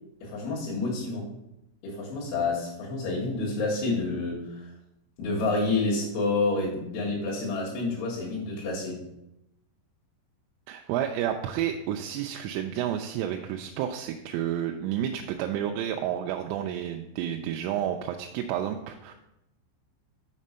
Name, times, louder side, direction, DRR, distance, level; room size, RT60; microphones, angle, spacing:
voice 1, 0.2-1.3 1.8-4.7 5.2-9.0, left 3 dB, 65° left, -9 dB, 3.6 m, -29 dB
voice 2, 10.7-19.2, right 10 dB, 85° right, 4 dB, 3.1 m, -30 dB
6.7 x 6.2 x 5.4 m, 0.87 s
omnidirectional pair, 5.7 m